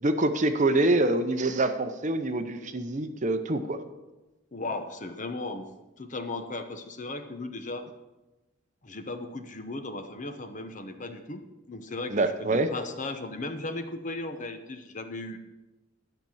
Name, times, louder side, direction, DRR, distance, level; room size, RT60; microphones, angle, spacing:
voice 1, 0.0-3.8 12.1-12.7, right 2 dB, 40° right, 9 dB, 0.7 m, -25 dB
voice 2, 4.5-5.7 6.0-7.9 8.8-15.4, left 2 dB, 40° left, 7 dB, 0.9 m, -36 dB
12.5 x 5.9 x 7.1 m, 1.1 s
head